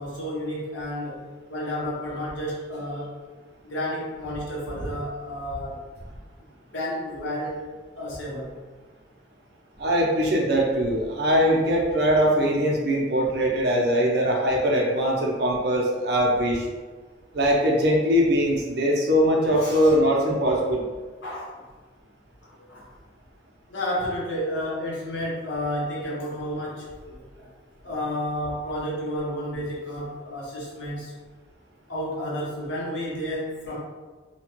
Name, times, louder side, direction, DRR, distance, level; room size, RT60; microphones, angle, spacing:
voice 1, 0.0-3.1 3.6-5.8 6.7-7.6 8.0-8.5 19.6-19.9 21.2-21.5 22.4-22.9 23.7-27.5 27.8-31.1 31.9-33.8, equal, 85° left, -5 dB, 0.9 m, -31 dB
voice 2, 9.8-16.7 17.3-20.9, equal, 55° right, -2 dB, 0.6 m, -21 dB
2.8 x 2.2 x 2.9 m, 1.4 s
head